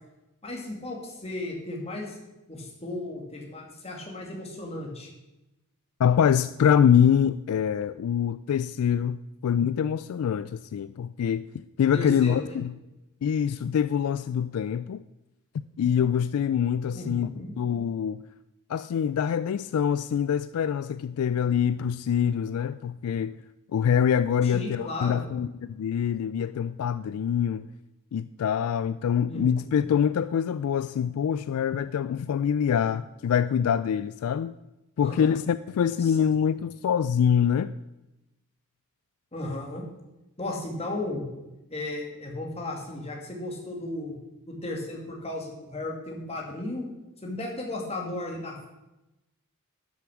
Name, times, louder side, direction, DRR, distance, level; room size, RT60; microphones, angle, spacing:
voice 1, 0.4-2.2 2.5-5.1 11.9-12.6 16.9-17.5 24.4-25.2 29.2-29.8 35.0-35.4 36.0-36.2 39.3-39.8 40.4-41.3 41.7-44.2 44.5-46.8 47.2-48.7, left 2 dB, 30° left, 2.3 m, -35 dB
voice 2, 6.0-11.4 11.8-12.7 13.2-15.0 15.8-17.3 17.6-18.2 18.7-23.3 23.7-27.7 28.1-34.5 35.0-37.7, left 8 dB, 70° left, 0.3 m, -25 dB
11.5 x 6.8 x 6.3 m
head